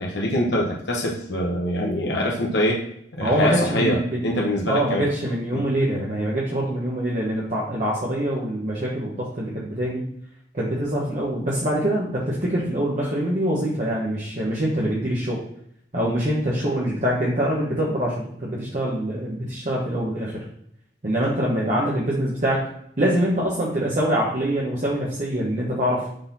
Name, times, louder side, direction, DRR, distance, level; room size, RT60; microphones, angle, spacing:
voice 1, 0.0-2.8 3.1-5.1 5.5-5.6, left 1 dB, 75° left, -2 dB, 1.0 m, -24 dB
voice 2, 3.2-4.2 4.7-10.0 10.5-15.4 15.9-20.4 21.0-22.7 23.0-26.1, right 1 dB, 45° right, -5 dB, 1.2 m, -24 dB
6.4 x 4.1 x 4.2 m, 0.70 s
head